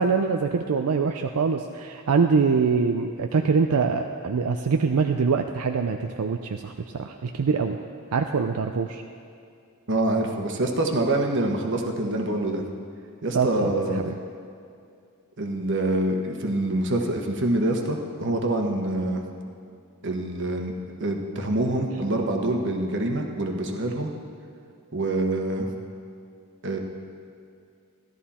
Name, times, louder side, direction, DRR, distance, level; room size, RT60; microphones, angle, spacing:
voice 1, 0.0-7.8 8.1-9.0 13.3-14.1, right 5 dB, 80° right, 5 dB, 0.5 m, -24 dB
voice 2, 9.9-12.6 13.2-14.0 15.4-19.2 20.0-20.7 21.0-24.1 24.9-25.7 26.6-26.8, right 1 dB, 55° right, 3 dB, 1.2 m, -25 dB
14.0 x 12.0 x 4.3 m, 2.4 s
head